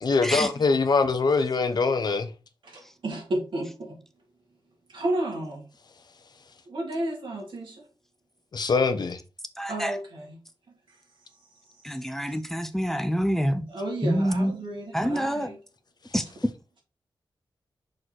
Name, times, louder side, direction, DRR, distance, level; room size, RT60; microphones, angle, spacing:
voice 1, 0.0-2.3 8.5-9.2, left 4 dB, 60° left, 1.0 m, -23 dB
voice 2, 2.6-4.0 4.9-5.7 6.6-7.8 9.7-10.4 12.3-12.4 13.7-15.6, right 1 dB, 80° right, 3.2 m, -32 dB
voice 3, 9.6-10.0 11.8-13.7 14.0-14.5 14.9-15.5 16.1-16.2, equal, 5° left, 0.7 m, -26 dB
6.5 x 4.2 x 4.6 m
wide cardioid pair, 110°, 8 cm